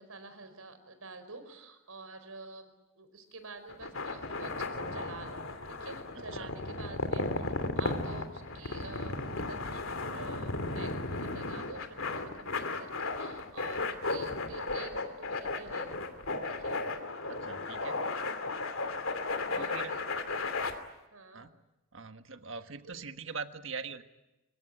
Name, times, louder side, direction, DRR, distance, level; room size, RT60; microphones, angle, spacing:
voice 1, 0.0-7.5 7.7-16.0 16.4-16.8 18.8-19.0 19.5-20.5 21.1-21.4 22.8-22.9, right 3 dB, 90° right, 10 dB, 4.9 m, -48 dB
sound 1, 3.7-20.7, left 3 dB, 75° left, 2.7 m, -35 dB
voice 2, 6.1-6.5 17.2-18.1 19.6-20.0 21.3-21.5 21.9-24.0, right 5 dB, 65° right, 8 dB, 1.5 m, -42 dB
26.0 x 23.0 x 9.9 m, 1.0 s
head